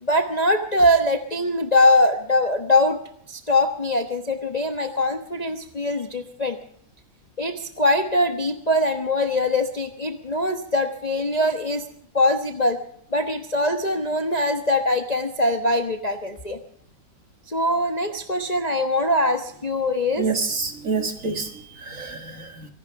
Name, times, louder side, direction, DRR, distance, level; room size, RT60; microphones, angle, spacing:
voice 1, 0.0-3.0 3.3-6.6 7.4-11.8 12.1-12.8 13.1-16.6 17.5-20.3, left 1 dB, 25° left, 6 dB, 1.0 m, -22 dB
voice 2, 20.2-22.7, right 4 dB, 45° right, 6 dB, 2.2 m, -28 dB
25.0 x 11.5 x 4.7 m, 0.64 s
omnidirectional pair, 2.0 m